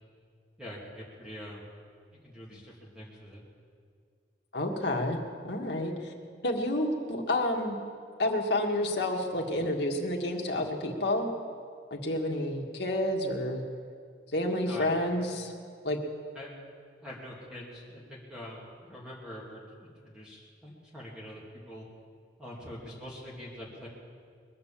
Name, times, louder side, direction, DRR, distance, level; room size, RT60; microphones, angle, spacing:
voice 1, 0.6-1.6 2.2-3.4 14.6-14.9 16.3-16.5 17.0-21.8 22.4-23.9, left 1 dB, 5° right, -5 dB, 2.7 m, -44 dB
voice 2, 4.5-5.2 5.4-6.1 6.4-7.8 8.2-11.3 11.9-13.6 14.3-15.5 15.8-16.0, left 1 dB, 65° left, 1 dB, 1.9 m, -29 dB
21.5 x 8.6 x 7.4 m, 2.1 s
head